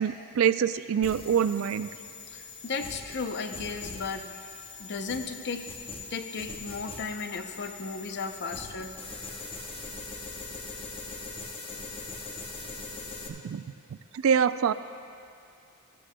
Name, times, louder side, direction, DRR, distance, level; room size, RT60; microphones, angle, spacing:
voice 1, 0.0-1.9 13.4-13.6 14.2-14.7, right 7 dB, 80° right, 14 dB, 0.3 m, -25 dB
sound 1, 1.0-13.3, left 3 dB, 25° left, 1.0 m, -41 dB
voice 2, 2.3-4.3 4.8-5.7 6.1-9.0, left 4 dB, 55° left, 7 dB, 0.6 m, -35 dB
16.0 x 14.5 x 2.2 m, 2.5 s
head